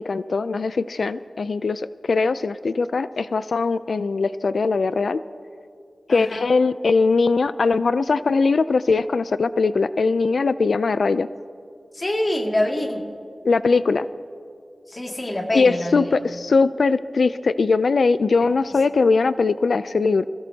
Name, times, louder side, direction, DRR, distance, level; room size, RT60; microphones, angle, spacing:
voice 1, 0.0-5.2 6.1-11.3 13.4-14.1 15.5-20.2, left 4 dB, 75° left, 14 dB, 0.3 m, -20 dB
voice 2, 6.1-6.4 11.9-13.0 14.9-16.1, left 1 dB, 35° left, 1 dB, 2.2 m, -25 dB
26.0 x 16.5 x 2.8 m, 2.5 s
wide cardioid pair, 70°, 0 cm